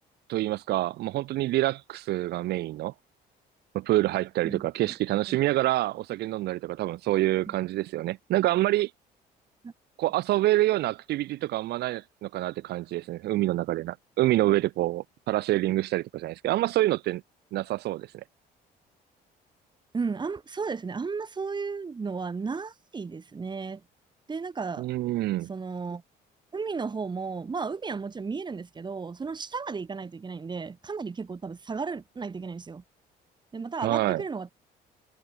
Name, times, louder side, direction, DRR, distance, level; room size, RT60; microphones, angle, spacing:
voice 1, 0.3-2.9 3.7-8.9 10.0-17.2 17.5-18.2 24.8-25.5 33.8-34.2, right 16 dB, 75° right, 2.1 m, -27 dB
voice 2, 4.4-4.9 5.3-5.4 7.5-7.6 9.6-9.7 19.9-23.8 24.3-24.9 25.5-26.0 26.5-32.8 33.5-34.5, right 4 dB, 25° right, 4.0 m, -34 dB
cardioid pair, 110°, 17 cm